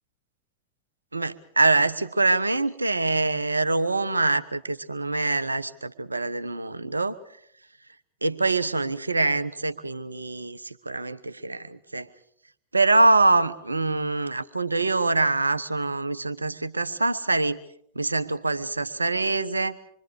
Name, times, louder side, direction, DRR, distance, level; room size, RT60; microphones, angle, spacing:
voice 1, 1.1-7.2 8.2-12.1 12.7-17.6 17.9-19.8, right 2 dB, 80° right, 13 dB, 1.1 m, -24 dB
26.5 x 24.0 x 4.9 m, 0.67 s
figure-of-eight pair, 90°, 0 cm